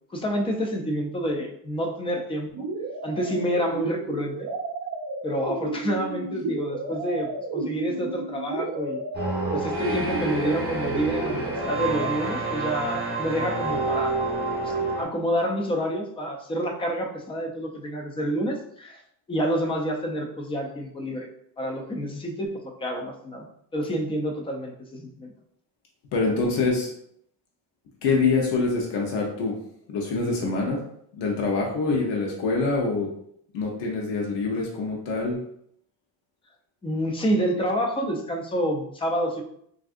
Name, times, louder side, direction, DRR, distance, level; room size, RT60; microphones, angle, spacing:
voice 1, 0.1-2.5 3.0-4.4 5.2-9.0 9.5-14.2 14.6-19.0 19.3-21.3 21.6-23.5 23.7-25.3 36.8-39.4, equal, 15° left, 1 dB, 0.4 m, -28 dB
sound 1, 2.5-12.1, right 3 dB, 45° right, 0.5 m, -33 dB
sound 2, 9.1-15.0, right 2 dB, 25° right, 0.9 m, -28 dB
voice 2, 26.1-26.9 28.0-29.6 29.9-30.8 31.2-33.1 33.5-35.4, left 3 dB, 85° left, -1 dB, 0.8 m, -25 dB
3.4 x 2.5 x 2.4 m, 0.70 s
cardioid pair, 140°, 41 cm